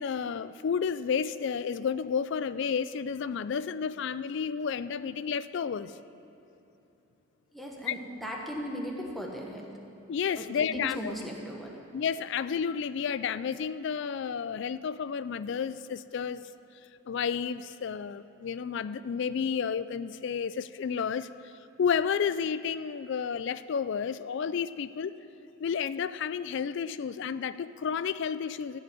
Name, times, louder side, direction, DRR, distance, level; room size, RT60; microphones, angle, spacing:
voice 1, 0.0-5.9 7.9-8.0 10.1-11.1 11.9-16.4 17.1-21.3 21.8-25.1 25.6-28.8, left 6 dB, 55° left, 15 dB, 0.3 m, -31 dB
voice 2, 7.5-9.7 10.4-11.8, equal, ahead, -1 dB, 1.2 m, -38 dB
14.5 x 5.0 x 9.4 m, 2.9 s
head